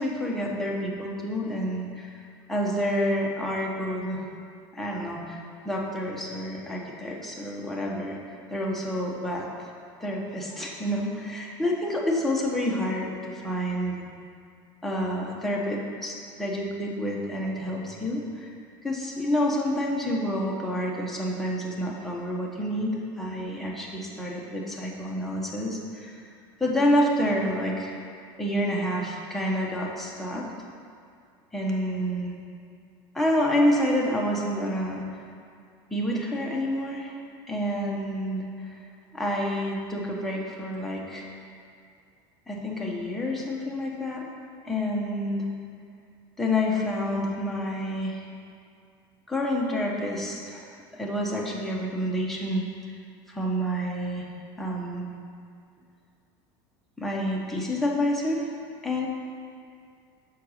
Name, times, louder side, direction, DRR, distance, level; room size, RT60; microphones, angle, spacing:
voice 1, 0.0-2.2 2.5-4.3 4.7-8.2 8.5-9.5 10.0-14.0 14.8-18.5 18.8-26.3 26.6-28.0 28.4-30.5 31.5-32.4 33.1-35.0 35.9-37.2 37.5-38.7 39.1-41.3 42.5-44.3 44.6-45.4 46.4-48.3 49.3-50.6 50.9-52.6 53.3-54.3 54.6-55.1 57.0-58.5 58.8-59.1, equal, ahead, -3 dB, 1.0 m, -28 dB
6.0 x 4.5 x 6.4 m, 2.3 s
supercardioid pair, 135°, 12 cm